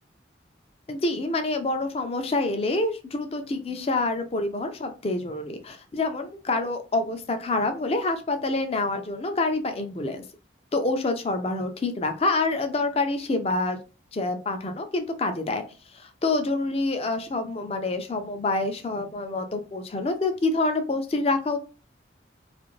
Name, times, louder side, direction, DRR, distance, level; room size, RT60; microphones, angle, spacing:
voice 1, 0.9-10.2 10.7-13.8 14.1-15.6 15.9-21.6, left 2 dB, 30° left, 7 dB, 0.4 m, -27 dB
2.5 x 2.5 x 3.0 m, 0.33 s
head